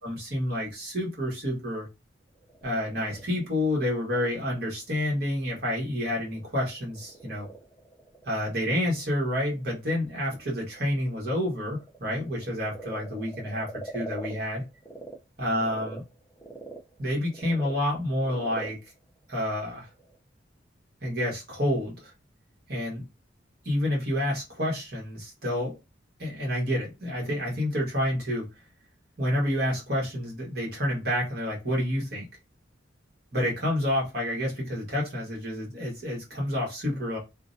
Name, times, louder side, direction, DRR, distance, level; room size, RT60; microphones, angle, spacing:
voice 1, 0.0-1.9 2.6-7.5 8.2-14.7 15.4-16.0 17.0-18.8 19.3-19.9 21.0-22.1 22.7-23.0 23.6-25.8 26.2-28.5 29.2-32.3 33.3-37.2, left 1 dB, 55° right, 1.2 m, -29 dB
Frog, 2.3-15.2 15.5-20.2, right 2 dB, 15° left, 0.5 m, -45 dB
2.5 x 2.0 x 2.5 m
head